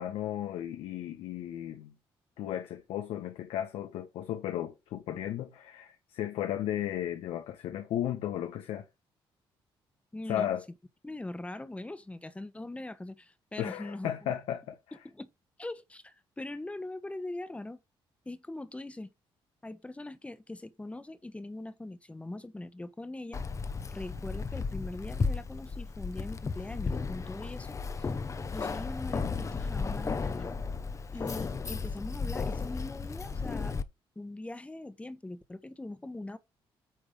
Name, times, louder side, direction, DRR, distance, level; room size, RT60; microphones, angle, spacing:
voice 1, 0.0-1.9 2.4-8.8 10.3-10.6 13.6-15.0, left 11 dB, 90° left, 1.3 m, -35 dB
voice 2, 10.1-10.5 11.0-14.3 15.0-15.3 15.6-17.8 18.2-19.1 19.6-23.4 23.9-27.7 28.5-30.6 31.1-33.8 34.1-36.4, left 2 dB, 15° left, 1.2 m, -41 dB
Keys jangling, 23.3-33.8, left 4 dB, 35° left, 0.9 m, -34 dB
9.2 x 3.4 x 6.7 m
cardioid pair, 95°, 10 cm